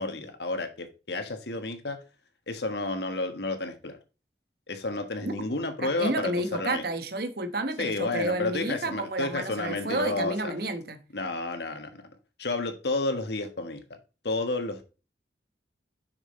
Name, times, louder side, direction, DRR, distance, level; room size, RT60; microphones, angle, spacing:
voice 1, 0.0-2.0 2.5-4.0 4.7-6.8 7.8-10.5 11.1-12.0 12.4-13.8 14.2-14.8, left 2 dB, 65° left, 1.4 m, -31 dB
voice 2, 5.8-11.0, right 2 dB, 55° right, 1.1 m, -31 dB
6.9 x 5.9 x 4.3 m
head